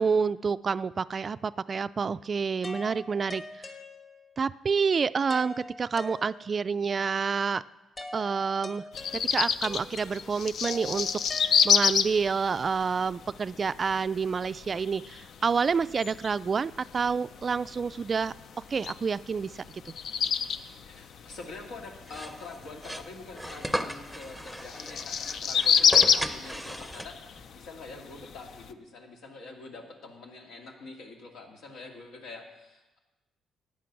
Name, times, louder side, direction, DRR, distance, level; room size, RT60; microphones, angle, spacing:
voice 1, 0.0-3.7 4.4-7.6 8.1-8.8 9.1-11.1 11.6-18.3 18.7-19.9, right 5 dB, 40° right, 16 dB, 0.3 m, -28 dB
sound 1, 2.6-4.4 5.3-6.7 8.0-12.1, left 2 dB, 35° left, 2.0 m, -44 dB
sound 2, 8.9-28.7, left 7 dB, 65° left, 0.5 m, -30 dB
voice 2, 20.9-33.0, left 3 dB, 85° left, 1 dB, 2.3 m, -45 dB
sound 3, 22.1-27.4, equal, 5° left, 0.7 m, -36 dB
13.5 x 9.0 x 5.9 m, 1.1 s
cardioid pair, 90°, 0 cm